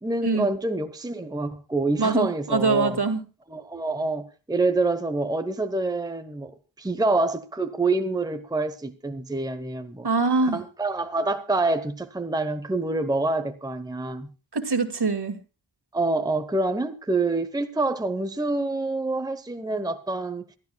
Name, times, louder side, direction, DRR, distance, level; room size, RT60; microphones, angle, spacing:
voice 1, 0.0-3.0 3.5-6.5 6.8-10.1 10.4-14.3 15.9-20.4, right 2 dB, 10° right, 0.9 m, -26 dB
voice 2, 2.0-3.2 10.0-10.6 14.5-15.4, right 3 dB, 60° right, 2.0 m, -23 dB
27.0 x 12.0 x 2.3 m
wide cardioid pair, 60°, 45 cm